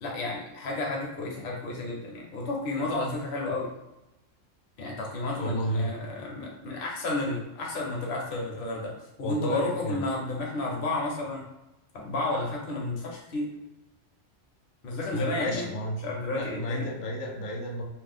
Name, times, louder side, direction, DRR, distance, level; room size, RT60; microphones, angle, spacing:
voice 1, 0.0-3.7 4.8-8.9 9.2-11.4 11.9-13.5 14.8-15.7 16.0-16.9, left 2 dB, 55° left, -2 dB, 0.8 m, -31 dB
voice 2, 5.3-5.9 9.2-10.1 15.1-16.0 16.3-17.8, right 1 dB, 85° left, 0 dB, 1.0 m, -32 dB
2.6 x 2.0 x 3.3 m, 0.94 s
omnidirectional pair, 1.3 m